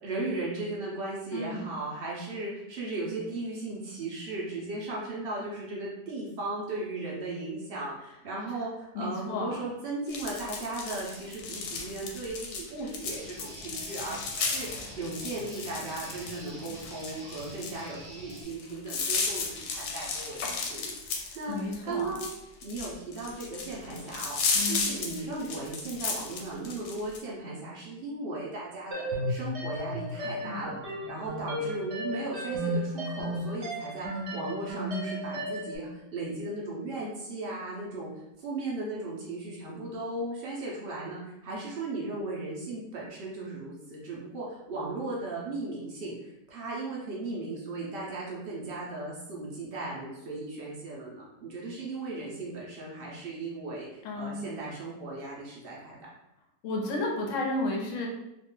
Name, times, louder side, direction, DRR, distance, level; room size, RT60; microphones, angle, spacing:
voice 1, 0.0-22.2 22.6-38.1 38.4-56.0, right 2 dB, 80° right, -5 dB, 0.5 m, -37 dB
voice 2, 1.3-1.7 8.9-9.6 21.5-22.2 24.5-24.9 30.4-30.7 54.0-54.4 56.6-58.1, left 2 dB, 65° left, 0 dB, 0.8 m, -32 dB
sound 1, 10.1-27.2, left 4 dB, 90° left, 1.3 m, -34 dB
Guitar, 13.0-18.4, equal, 5° right, 0.8 m, -47 dB
sound 2, 28.9-35.8, equal, 45° right, 1.0 m, -34 dB
2.9 x 2.4 x 3.7 m, 0.89 s
omnidirectional pair, 1.9 m